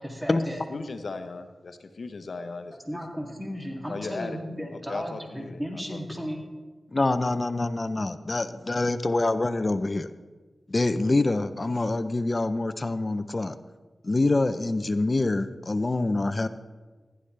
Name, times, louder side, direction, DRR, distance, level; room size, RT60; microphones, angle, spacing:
voice 1, 0.0-0.6 2.7-6.4, equal, 10° right, 0 dB, 2.6 m, -35 dB
voice 2, 0.7-3.0 3.9-4.4 4.9-5.6 5.9-6.0, left 3 dB, 70° left, 8 dB, 0.9 m, -37 dB
voice 3, 6.9-10.1 10.7-13.6 14.0-16.5, left 2 dB, 40° left, 12 dB, 0.6 m, -25 dB
15.0 x 11.0 x 3.3 m, 1.3 s
cardioid pair, 55°, 0 cm